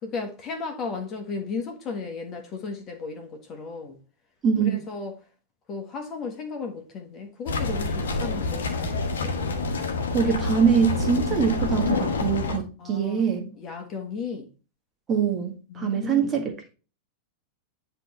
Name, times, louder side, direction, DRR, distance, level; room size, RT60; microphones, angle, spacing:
voice 1, 0.0-4.0 4.6-5.1 5.7-9.4 12.8-13.3 13.6-14.5 15.7-16.3, left 4 dB, 30° left, 1.4 m, -35 dB
voice 2, 4.4-4.8 10.1-13.5 15.1-16.5, right 6 dB, 25° right, 1.7 m, -23 dB
sound 1, 7.5-12.6, left 3 dB, 65° left, 1.2 m, -27 dB
9.9 x 3.4 x 4.2 m
figure-of-eight pair, 90°, 0 cm